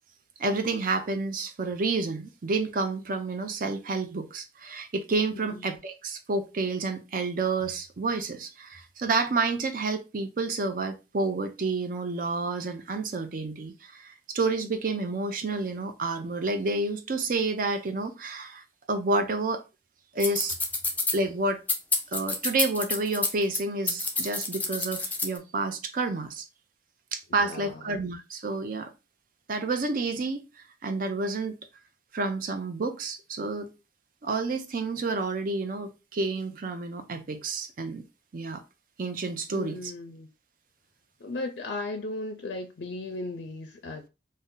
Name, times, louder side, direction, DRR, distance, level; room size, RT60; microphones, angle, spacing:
voice 1, 0.4-19.6 20.1-20.6 21.1-21.6 22.1-26.5 27.1-28.9 29.5-31.6 32.1-33.7 34.2-38.0 38.3-38.6 39.0-39.8, right 3 dB, 50° right, 0.5 m, -29 dB
sound 1, 20.2-21.2 21.7-23.6 23.9-25.4, left 3 dB, 10° left, 0.4 m, -28 dB
voice 2, 27.4-27.8 39.5-40.3 41.2-44.1, left 2 dB, 65° left, 0.4 m, -36 dB
2.6 x 2.1 x 3.7 m
head